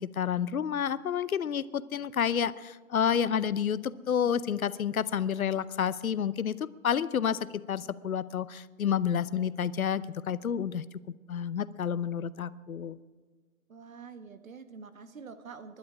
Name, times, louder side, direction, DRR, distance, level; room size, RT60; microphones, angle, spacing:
voice 1, 0.0-10.8 11.3-13.0, left 8 dB, 80° left, 17 dB, 0.8 m, -30 dB
voice 2, 13.7-15.8, right 5 dB, 75° right, 9 dB, 1.8 m, -46 dB
19.5 x 11.5 x 4.9 m, 1.5 s
hypercardioid pair, 170°, 42 cm